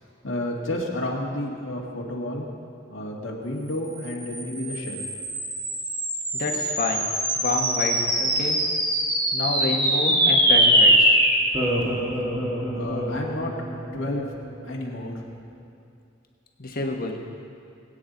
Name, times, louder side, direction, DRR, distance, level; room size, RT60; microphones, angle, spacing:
voice 1, 0.2-2.5 2.9-5.0 12.8-13.5 13.9-14.3 14.6-15.1, left 1 dB, 70° left, -3 dB, 1.8 m, -31 dB
sound 1, 4.1-14.7, equal, 20° right, 1.8 m, -23 dB
voice 2, 6.3-7.1 7.3-8.6 9.3-11.2 16.6-17.2, left 2 dB, 45° left, 2 dB, 1.4 m, -28 dB
21.5 x 9.1 x 4.0 m, 2.5 s
head